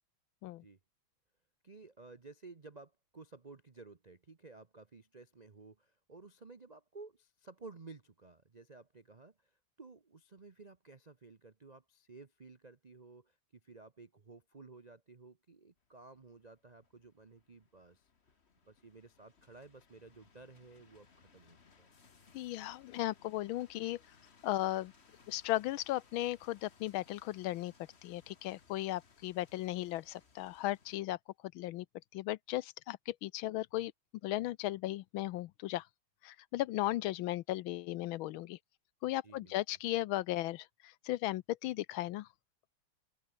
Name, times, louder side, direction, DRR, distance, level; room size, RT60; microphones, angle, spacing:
voice 1, 1.6-9.5 9.8-18.1 18.7-21.9 39.2-39.6, right 3 dB, 55° right, 0.4 m, -55 dB
sound 1, 15.8-31.0, left 5 dB, 30° left, 1.7 m, -65 dB
voice 2, 22.3-24.0 24.4-24.9 25.3-27.7 28.0-31.2 31.5-31.8 32.1-33.9 34.2-35.9 36.2-38.6 39.0-42.3, left 15 dB, 75° left, 1.3 m, -36 dB
open air
omnidirectional pair, 2.4 m